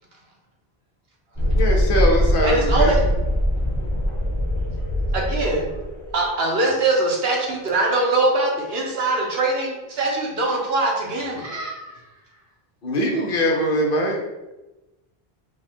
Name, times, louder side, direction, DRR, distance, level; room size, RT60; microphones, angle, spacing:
Thunderstorm, 1.4-8.8, equal, 20° left, 1.0 m, -23 dB
voice 1, 1.6-3.0 12.8-14.2, equal, 60° left, 0 dB, 0.9 m, -22 dB
voice 2, 2.4-3.0 5.1-5.7 6.1-11.5, right 2 dB, 75° right, -1 dB, 1.2 m, -22 dB
voice 3, 11.4-12.2, right 2 dB, 50° right, -8 dB, 1.3 m, -36 dB
4.8 x 2.4 x 4.3 m, 1.0 s
omnidirectional pair, 1.0 m